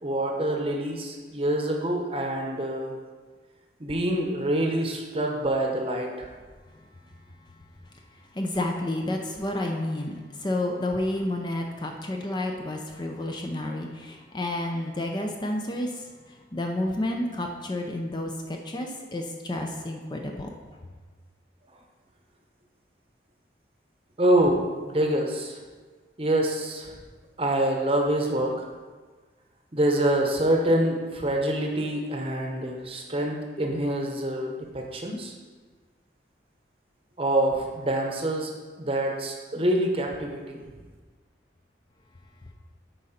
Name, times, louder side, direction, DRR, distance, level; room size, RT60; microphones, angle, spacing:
voice 1, 0.0-2.9 3.8-6.3 24.2-25.6 26.2-26.9 27.4-28.6 29.7-35.3 37.2-38.5 38.8-40.6, right 1 dB, 30° right, 1 dB, 0.9 m, -26 dB
voice 2, 8.3-15.9 16.5-20.5, left 1 dB, 25° left, 2 dB, 0.5 m, -30 dB
8.7 x 5.3 x 4.3 m, 1.4 s
head